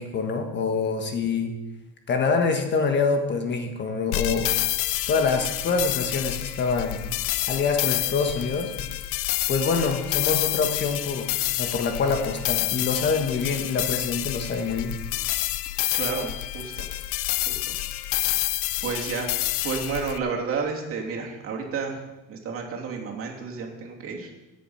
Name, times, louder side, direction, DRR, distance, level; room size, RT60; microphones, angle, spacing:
voice 1, 0.0-1.6 2.1-4.5 5.1-7.0 7.5-8.7 9.5-15.0, left 4 dB, 35° left, 5 dB, 1.4 m, -25 dB
sound 1, 4.1-20.2, left 16 dB, 85° left, 0.7 m, -28 dB
voice 2, 15.9-16.9 17.5-17.7 18.3-18.5 18.8-22.0 22.3-24.3, right 5 dB, 45° right, 0 dB, 2.8 m, -31 dB
16.5 x 7.7 x 5.7 m, 1.0 s
cardioid pair, 150°, 32 cm